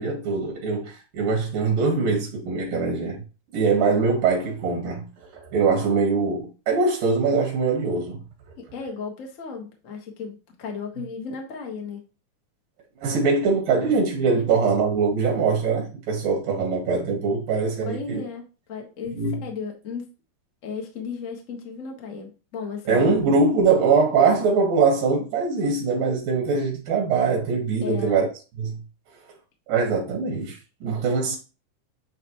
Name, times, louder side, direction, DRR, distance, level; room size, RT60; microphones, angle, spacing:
voice 1, 0.0-3.2 3.5-8.2 13.0-18.2 19.1-19.4 22.9-28.3 28.6-28.8 29.7-31.4, right 4 dB, 80° right, 3.3 m, -22 dB
voice 2, 8.6-12.0 14.5-14.6 17.9-18.4 18.7-20.1 20.6-23.1 27.8-28.2, left 5 dB, 70° left, 0.7 m, -35 dB
9.8 x 3.4 x 3.0 m
omnidirectional pair, 3.8 m